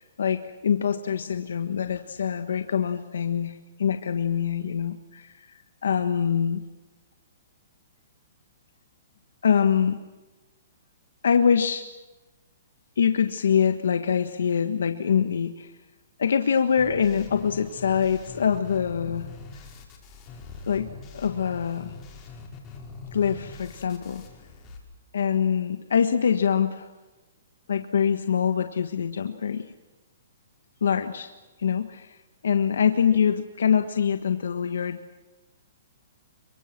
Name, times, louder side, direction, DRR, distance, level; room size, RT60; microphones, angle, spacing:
voice 1, 0.0-6.6 9.4-10.0 11.2-11.8 13.0-15.7 16.2-19.3 20.7-20.9 21.1-22.0 23.1-24.2 25.1-26.9 27.7-29.6 30.8-31.3 31.6-32.2 32.4-35.0, left 7 dB, 80° left, 8 dB, 1.4 m, -24 dB
sound 1, 16.8-24.8, left 4 dB, 25° left, 5.1 m, -43 dB
25.5 x 23.5 x 7.5 m, 1.2 s
hypercardioid pair, 155°, 0 cm